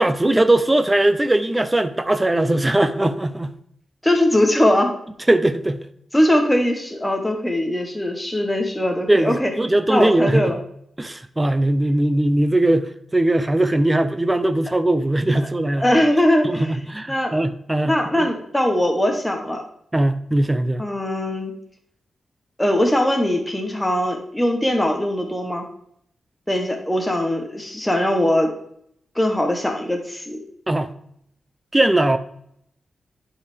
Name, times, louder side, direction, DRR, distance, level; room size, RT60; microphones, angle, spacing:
voice 1, 0.0-3.5 5.3-5.8 9.1-10.6 11.0-15.9 16.4-18.3 19.9-20.8 30.7-30.9 31.7-32.2, right 1 dB, 10° right, 10 dB, 0.6 m, -20 dB
voice 2, 4.0-4.9 6.1-9.5 9.9-10.6 15.8-16.7 17.1-17.3 17.8-19.6 20.8-21.5 22.6-25.7 26.5-28.5 29.2-30.4, left 1 dB, 5° left, 2 dB, 1.0 m, -20 dB
11.5 x 4.7 x 3.4 m, 0.71 s
wide cardioid pair, 175°, 0 cm